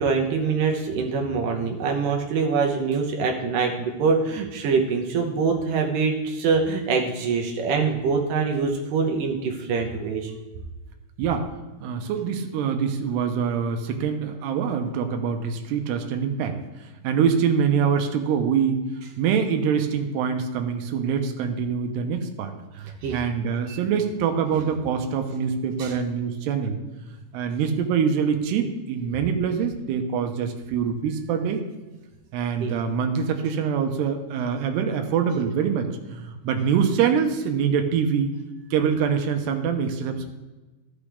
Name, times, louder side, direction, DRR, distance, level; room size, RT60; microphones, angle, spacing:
voice 1, 0.0-10.3 23.0-23.2 23.7-23.8 24.5-24.7 25.8-25.9 32.6-32.7 33.5-33.6, right 5 dB, 75° right, 2 dB, 2.1 m, -24 dB
voice 2, 11.8-16.6 17.0-18.8 19.2-26.8 27.0-31.6 32.3-38.3 38.7-40.3, right 7 dB, 90° right, 5 dB, 2.8 m, -24 dB
13.5 x 6.1 x 3.3 m, 1.1 s
omnidirectional pair, 4.7 m